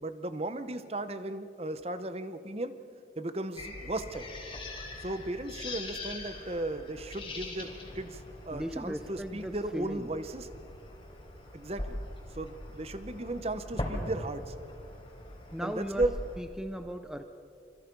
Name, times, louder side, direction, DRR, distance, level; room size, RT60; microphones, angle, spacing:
voice 1, 0.0-2.8 3.2-4.3 5.0-7.7 7.9-10.5 11.5-12.0 12.3-14.5 15.6-16.2, right 2 dB, 35° right, 11 dB, 0.9 m, -35 dB
sound 1, 3.6-16.4, left 1 dB, 25° left, 3.9 m, -42 dB
voice 2, 8.5-10.1 15.5-16.1 16.4-17.2, equal, 5° right, 7 dB, 0.6 m, -38 dB
27.0 x 25.5 x 5.4 m, 2.7 s
head